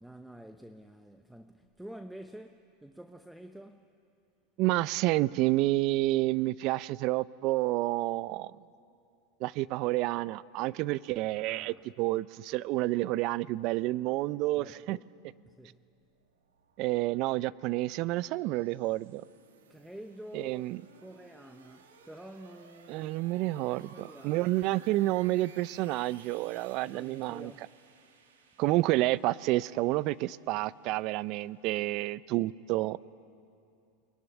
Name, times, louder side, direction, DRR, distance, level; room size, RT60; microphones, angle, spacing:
voice 1, 0.0-3.9 11.5-11.8 14.6-15.0 15.5-15.9 19.7-20.7 21.0-24.5 26.8-27.7, right 1 dB, 5° right, 0.9 m, -49 dB
voice 2, 4.6-8.5 9.4-15.0 16.8-19.2 20.3-20.8 22.9-27.5 28.6-33.0, right 18 dB, 55° right, 0.5 m, -29 dB
sound 1, 15.7-31.7, right 5 dB, 90° right, 2.5 m, -59 dB
22.5 x 21.0 x 9.8 m
hypercardioid pair, 105°, 0 cm